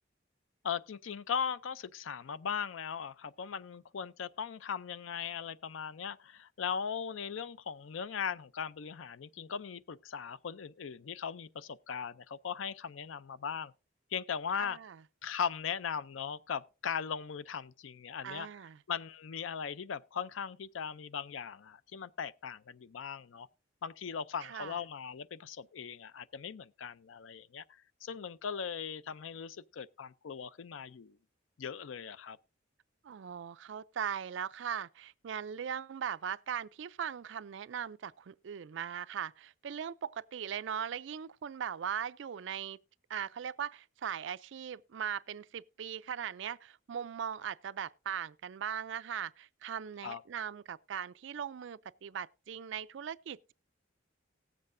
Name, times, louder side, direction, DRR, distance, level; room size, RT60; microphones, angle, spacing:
voice 1, 0.6-13.7 14.1-14.8 15.2-18.5 18.9-23.5 23.8-27.6 28.0-31.2 31.6-32.4 50.0-50.2, left 7 dB, 85° left, 0.5 m, -39 dB
voice 2, 14.5-15.0 18.2-18.8 24.4-24.8 33.0-42.8 43.1-53.5, right 8 dB, 65° right, 0.4 m, -39 dB
18.5 x 7.6 x 2.5 m
head